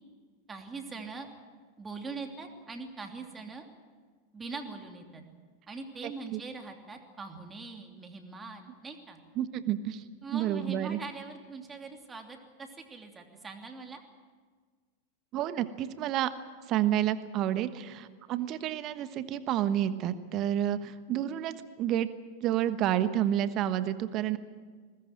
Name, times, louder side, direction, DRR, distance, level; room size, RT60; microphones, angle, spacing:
voice 1, 0.5-1.3 1.8-3.6 4.3-5.2 5.7-9.2 10.2-14.0, right 4 dB, 15° right, 4 dB, 3.0 m, -42 dB
voice 2, 6.0-6.4 9.4-10.1 10.3-11.0 15.3-16.3 16.7-22.1 22.4-24.4, right 11 dB, 35° right, 13 dB, 1.3 m, -30 dB
21.5 x 19.5 x 9.1 m, 1.5 s
figure-of-eight pair, 90°, 0 cm